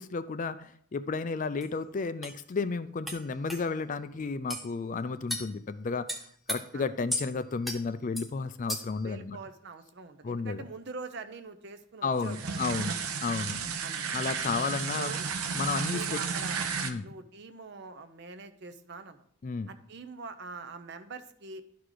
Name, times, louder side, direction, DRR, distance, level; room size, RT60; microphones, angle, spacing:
voice 1, 0.0-6.1 6.5-9.4 10.2-10.7 12.0-12.9 13.2-13.6 14.1-15.1 15.5-16.2 16.8-17.2 19.4-19.7, left 4 dB, 35° left, 12 dB, 0.3 m, -32 dB
sound 1, 1.6-1.7 2.2-2.4 3.1-3.2 3.5-3.6 4.5-4.7 5.3-5.5 6.1-6.6 7.1-7.3 7.6-7.8 8.2-8.3 8.7-9.0, left 1 dB, ahead, 0.6 m, -34 dB
voice 2, 9.0-13.1 13.8-14.2 14.9-15.3 15.9-16.7 17.0-19.3 19.7-21.6, right 4 dB, 50° right, 10 dB, 0.6 m, -44 dB
sound 2, 12.2-16.9, right 5 dB, 85° right, 0.7 m, -33 dB
11.0 x 4.8 x 3.9 m, 0.64 s
head